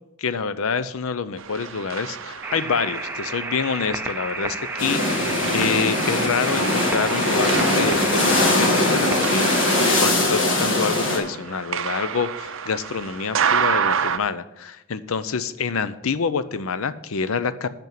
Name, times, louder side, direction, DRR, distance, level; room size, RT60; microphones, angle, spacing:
voice 1, 0.2-9.6 10.0-17.7, left 5 dB, 75° left, 14 dB, 0.6 m, -27 dB
sound 1, 1.4-14.2, right 7 dB, 65° right, 0.5 m, -30 dB
sound 2, 2.4-10.0, right 3 dB, 10° right, 0.5 m, -32 dB
sound 3, 4.8-11.2, left 2 dB, 55° left, 1.8 m, -21 dB
8.3 x 5.3 x 7.5 m, 0.86 s
head